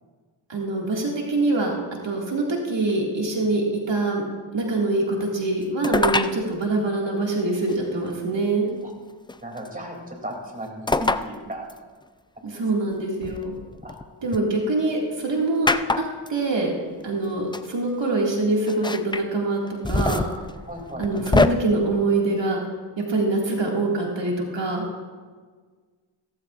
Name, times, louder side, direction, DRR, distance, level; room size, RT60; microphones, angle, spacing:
voice 1, 0.5-1.7 2.0-4.2 4.5-8.7 12.4-13.5 14.2-15.7 16.3-16.7 17.0-20.2 21.0-22.6 23.0-24.8, right 2 dB, 70° right, -2 dB, 2.1 m, -24 dB
sound 1, 5.8-6.4 7.7-7.8 9.3-9.7 10.9-11.3 11.7-11.8 13.2-14.4 15.7-16.3 17.2-17.3 17.5-17.7 18.7-19.2 19.7-21.5, left 3 dB, 10° left, 0.3 m, -23 dB
voice 2, 9.4-11.7 12.3-12.9 13.8-14.0 20.7-21.1, right 1 dB, 20° right, 0 dB, 2.7 m, -36 dB
16.5 x 14.0 x 2.5 m, 1.5 s
wide cardioid pair, 70°, 45 cm